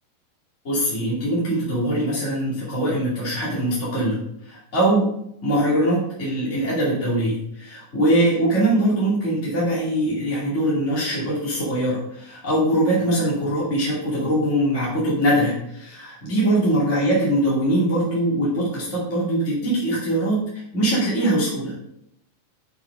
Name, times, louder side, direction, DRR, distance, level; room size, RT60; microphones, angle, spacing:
voice 1, 0.6-4.2 4.4-5.1 5.4-21.7, right 1 dB, 25° left, -7 dB, 2.6 m, -22 dB
7.0 x 6.3 x 5.2 m, 0.75 s
omnidirectional pair, 3.7 m